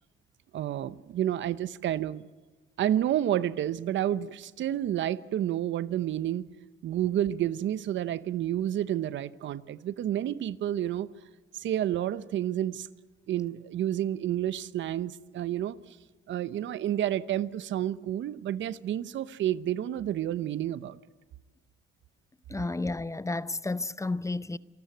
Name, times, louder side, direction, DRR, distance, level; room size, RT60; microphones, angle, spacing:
voice 1, 0.5-2.3 2.8-6.4 6.8-11.1 11.5-12.9 13.3-15.8 16.3-21.0, right 11 dB, 70° right, 0.8 m, -30 dB
voice 2, 22.5-24.6, left 2 dB, 15° left, 0.7 m, -31 dB
27.5 x 12.5 x 9.2 m
cardioid pair, 90°, 20 cm